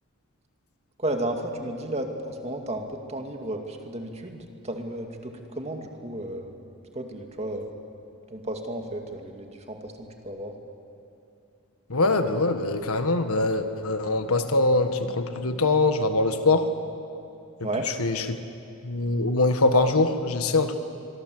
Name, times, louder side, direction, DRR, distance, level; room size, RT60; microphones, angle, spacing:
voice 1, 1.0-6.5 6.9-7.7 8.3-10.5 17.6-17.9, right 1 dB, 30° right, 3 dB, 2.2 m, -33 dB
voice 2, 11.9-16.7 18.0-18.2 18.8-20.8, left 2 dB, 75° left, 8 dB, 1.6 m, -23 dB
24.5 x 24.0 x 7.8 m, 2.6 s
head